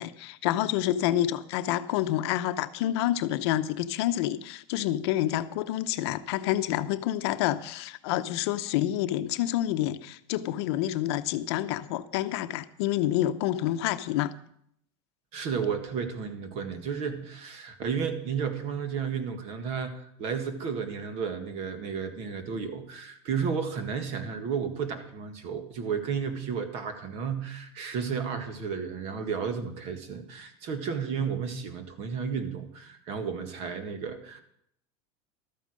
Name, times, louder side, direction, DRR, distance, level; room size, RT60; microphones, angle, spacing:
voice 1, 0.0-14.3, left 13 dB, 70° left, 0.8 m, -28 dB
voice 2, 15.3-34.4, right 6 dB, 45° right, 1.8 m, -33 dB
13.0 x 9.1 x 6.4 m
supercardioid pair, 150°, 14 cm